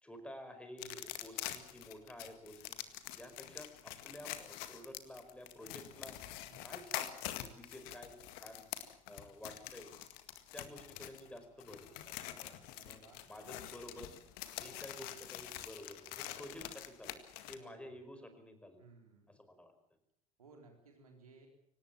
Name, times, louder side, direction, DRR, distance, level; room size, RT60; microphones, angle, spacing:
voice 1, 0.0-2.8 3.1-6.2 6.6-8.6 9.1-9.9 10.5-13.0 13.3-14.2 14.6-17.2 17.5-18.8 19.3-19.7, equal, 5° left, 8 dB, 4.9 m, -51 dB
sound 1, 0.8-17.5, left 14 dB, 55° left, 1.9 m, -46 dB
voice 2, 0.8-1.2 6.4-6.8 12.8-13.3 15.0-15.3 17.5-18.0 18.8-19.3 20.4-21.5, right 4 dB, 75° right, 3 dB, 4.0 m, -60 dB
25.0 x 18.5 x 7.4 m, 0.68 s
figure-of-eight pair, 70°, 18 cm